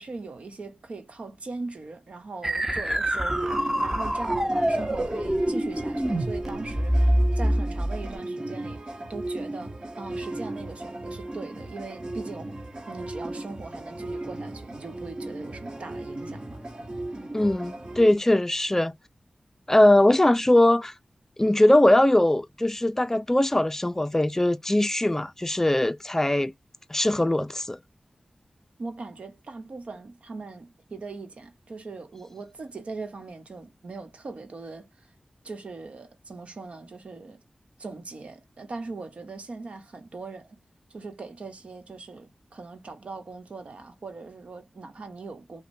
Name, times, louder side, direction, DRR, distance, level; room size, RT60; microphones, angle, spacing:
voice 1, 0.0-12.5 12.9-16.6 28.8-34.9 35.4-37.4 37.8-40.6 40.9-45.6, right 3 dB, 75° right, 1.0 m, -40 dB
sound 1, 2.4-8.2, right 1 dB, 20° right, 0.8 m, -25 dB
sound 2, 3.3-18.1, right 2 dB, 45° right, 1.2 m, -36 dB
voice 2, 17.3-18.9 19.7-20.9 21.4-26.5 26.9-27.8, left 1 dB, 20° left, 0.4 m, -21 dB
5.2 x 2.2 x 2.7 m
wide cardioid pair, 60°, 2 cm